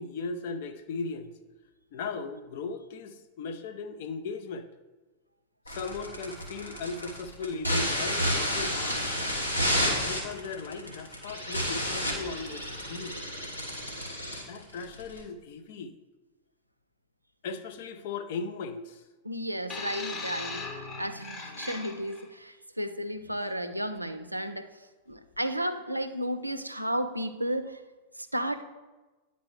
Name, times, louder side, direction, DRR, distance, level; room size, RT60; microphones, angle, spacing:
voice 1, 0.0-1.3 1.9-4.7 5.7-9.1 9.8-13.2 14.5-15.9 17.4-19.0, left 4 dB, 50° left, 9 dB, 0.5 m, -37 dB
sound 1, 5.7-15.2, equal, 90° left, 1.3 m, -31 dB
voice 2, 19.2-20.6 21.0-24.7 25.1-27.8 28.2-28.6, equal, 85° right, 9 dB, 0.4 m, -33 dB
sound 2, 19.7-22.2 23.2-23.3, left 3 dB, 30° left, 0.9 m, -38 dB
9.4 x 4.1 x 3.1 m, 1.2 s
figure-of-eight pair, 90°, 0 cm